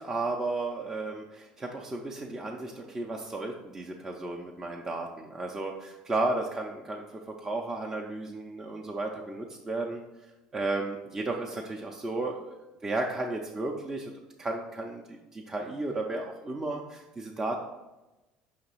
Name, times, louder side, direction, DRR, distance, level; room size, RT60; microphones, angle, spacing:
voice 1, 0.0-10.0 10.5-12.6 12.8-14.1 14.4-17.6, right 2 dB, 15° right, 0 dB, 0.5 m, -33 dB
6.0 x 2.9 x 5.6 m, 1.0 s
cardioid pair, 135°, 3 cm